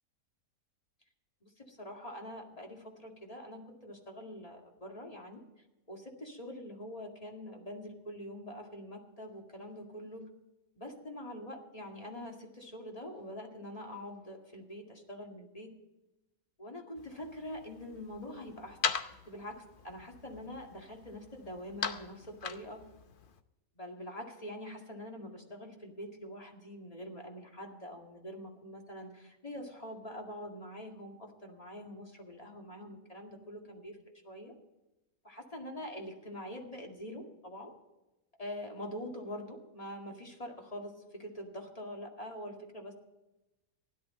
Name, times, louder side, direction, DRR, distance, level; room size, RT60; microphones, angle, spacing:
voice 1, 1.4-10.3 10.8-15.7 16.6-18.8 19.3-22.8 23.8-34.0 34.2-34.5 35.2-37.7 38.4-43.0, equal, 25° left, 1 dB, 2.2 m, -45 dB
sound 1, 17.0-23.4, left 6 dB, 45° left, 0.8 m, -41 dB
16.5 x 11.0 x 4.3 m, 1.0 s
omnidirectional pair, 1.5 m